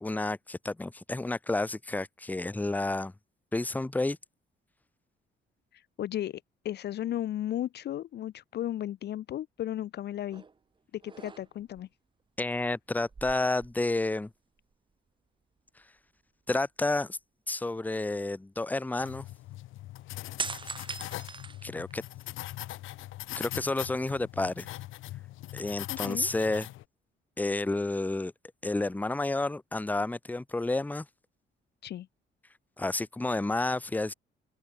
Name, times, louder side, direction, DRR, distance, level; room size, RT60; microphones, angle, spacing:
voice 1, 0.0-3.1 3.5-4.2 12.4-14.3 16.5-17.2 17.5-19.3 21.6-22.0 23.4-24.7 25.5-26.7 27.4-28.3 28.6-31.1 32.8-34.1, left 2 dB, 10° left, 0.7 m, -30 dB
voice 2, 5.7-10.4 10.9-11.9 25.9-26.3 31.8-32.1, left 12 dB, 55° left, 0.5 m, -35 dB
sound 1, 10.3-10.6 11.0-11.8 13.0-14.3 14.6-14.7 20.4-22.2 22.7-23.6, right 5 dB, 25° right, 0.7 m, -41 dB
sound 2, 19.0-26.8, left 16 dB, 85° left, 1.0 m, -41 dB
open air
cardioid pair, 90°, 20 cm